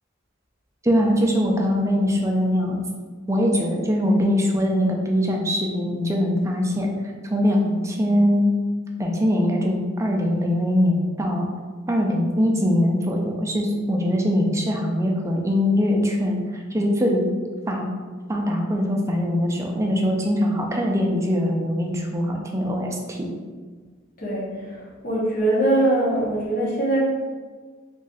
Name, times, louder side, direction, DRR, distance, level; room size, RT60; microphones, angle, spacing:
voice 1, 0.8-2.8 3.3-6.9 7.2-8.6 9.0-11.5 11.9-17.3 17.7-17.9 18.3-23.3, equal, 15° right, 0 dB, 0.4 m, -22 dB
voice 2, 24.2-27.0, right 1 dB, 50° left, -5 dB, 1.0 m, -22 dB
3.1 x 2.6 x 3.8 m, 1.4 s
head